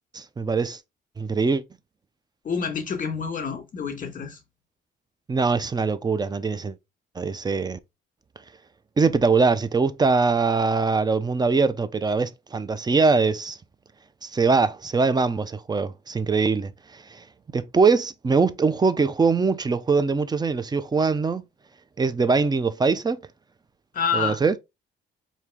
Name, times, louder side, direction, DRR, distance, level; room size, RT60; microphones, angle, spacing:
voice 1, 0.1-0.8 1.2-1.6 5.3-6.7 7.2-7.8 9.0-13.6 14.2-17.2 17.5-21.4 22.0-23.2 24.1-24.6, right 4 dB, 20° right, 0.5 m, -22 dB
voice 2, 2.4-4.4 23.9-24.6, left 6 dB, 45° left, 1.4 m, -28 dB
4.5 x 2.8 x 3.4 m
cardioid pair, 90°, 20 cm